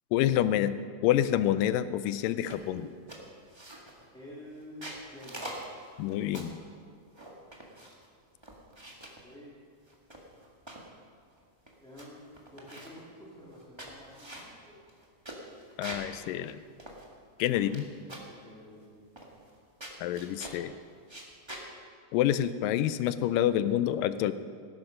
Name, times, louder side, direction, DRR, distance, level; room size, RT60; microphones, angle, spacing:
voice 1, 0.1-0.8 1.0-2.9 6.0-6.6 15.8-16.6 17.4-17.9 20.0-20.7 22.1-24.3, left 12 dB, 90° left, 13 dB, 2.3 m, -27 dB
sound 1, 2.5-2.8 3.1-4.1 4.6-6.6 7.1-8.1 8.4-9.2 9.9-10.9 11.4-11.5 11.7-12.1 12.3-13.0 13.5-16.1 16.5-16.6 16.8-17.8 18.1-18.4 19.2-19.5 19.8-20.6 21.0-21.7, right 1 dB, 15° right, 0.8 m, -44 dB
voice 2, 4.1-5.5 9.0-9.5 11.8-12.2 12.5-14.8 18.3-19.1, left 1 dB, ahead, -8 dB, 1.9 m, -49 dB
18.0 x 11.0 x 5.3 m, 2.1 s
omnidirectional pair, 3.8 m